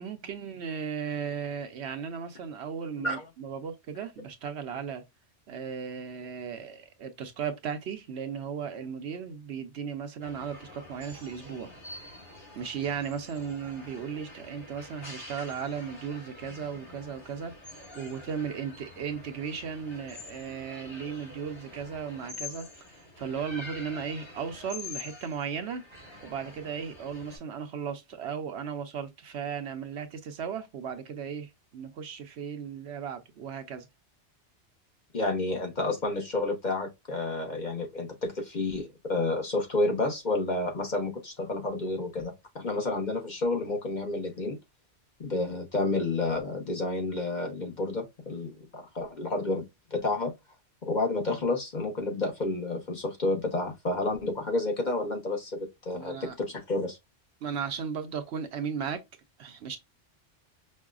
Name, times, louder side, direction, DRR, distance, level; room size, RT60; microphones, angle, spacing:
voice 1, 0.0-5.0 5.5-11.7 12.5-17.5 17.9-25.8 26.2-33.9 55.9-56.4 57.4-59.0 59.4-59.8, right 7 dB, 70° right, 0.9 m, -36 dB
sound 1, 10.2-27.4, left 3 dB, 70° left, 2.5 m, -46 dB
voice 2, 35.1-44.6 45.2-49.6 49.9-50.3 50.8-57.0, left 2 dB, 45° left, 0.9 m, -30 dB
5.3 x 2.1 x 2.4 m
omnidirectional pair, 1.2 m